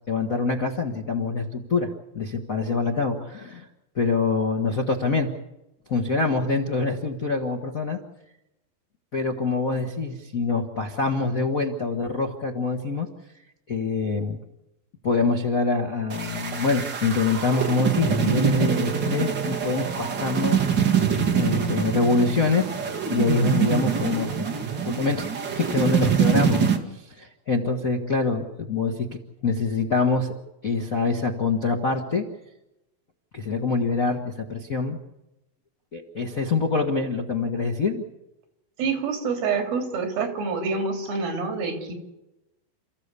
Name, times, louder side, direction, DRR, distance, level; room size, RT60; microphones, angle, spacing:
voice 1, 0.1-3.7 3.9-5.3 5.9-8.0 9.1-13.1 13.7-14.4 15.0-20.6 21.3-22.7 23.1-24.5 24.8-26.6 26.9-30.3 30.6-32.2 33.3-35.0 35.9-38.0, left 4 dB, 55° left, 1 dB, 0.9 m, -25 dB
sound 1, 16.1-26.8, right 7 dB, 35° right, 2.2 m, -24 dB
voice 2, 38.8-41.9, right 4 dB, 85° right, 4 dB, 4.9 m, -27 dB
29.0 x 15.0 x 8.3 m, 0.97 s
omnidirectional pair, 4.1 m